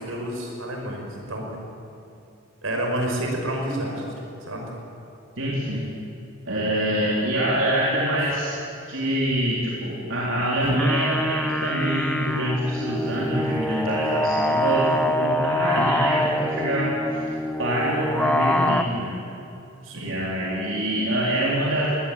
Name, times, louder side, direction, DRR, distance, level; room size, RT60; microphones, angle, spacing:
voice 1, 0.0-1.5 2.6-4.0 4.5-4.7 19.8-20.2, right 1 dB, 85° right, 1 dB, 5.7 m, -29 dB
voice 2, 5.4-5.8 6.5-8.6 8.9-17.2 17.6-19.1 19.9-21.9, right 1 dB, 70° right, -5 dB, 3.9 m, -25 dB
sound 1, 10.6-18.8, left 1 dB, 5° left, 0.7 m, -25 dB
22.0 x 18.5 x 9.2 m, 2.6 s
head